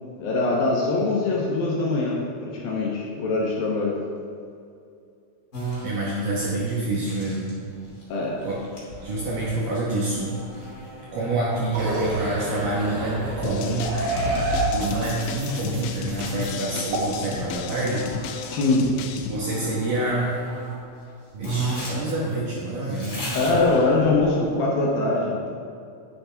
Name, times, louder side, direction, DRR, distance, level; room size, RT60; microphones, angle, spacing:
voice 1, 0.2-4.0 8.1-8.4 18.5-18.9 23.3-25.5, left 3 dB, 75° left, -4 dB, 2.3 m, -23 dB
sound 1, 5.5-18.7 19.4-20.8 21.1-21.2 21.4-24.5, right 2 dB, 35° left, 2.3 m, -37 dB
voice 2, 5.8-7.6 8.4-8.6 9.0-10.3 11.1-13.9 14.7-18.1 19.3-20.3 21.3-23.2, right 2 dB, 70° right, -5 dB, 2.2 m, -27 dB
sound 2, 11.5-16.5 16.9-17.0, right 2 dB, 90° right, 4.3 m, -28 dB
sound 3, 13.4-19.4, left 6 dB, 90° left, 2.4 m, -34 dB
10.0 x 8.7 x 3.4 m, 2.4 s
omnidirectional pair, 5.4 m